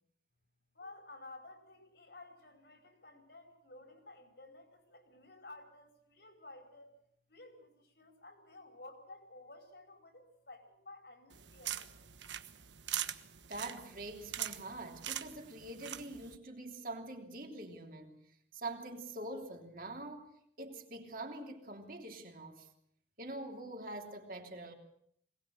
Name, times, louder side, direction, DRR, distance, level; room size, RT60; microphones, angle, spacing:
voice 1, 0.7-7.0 7.3-12.1, left 2 dB, 65° left, 5.1 m, -54 dB
sound 1, 11.3-16.4, right 11 dB, 90° right, 1.2 m, -42 dB
voice 2, 13.5-18.2 18.5-20.3 20.6-22.7 23.2-24.7, right 2 dB, 50° right, 3.3 m, -44 dB
22.0 x 19.0 x 8.0 m
head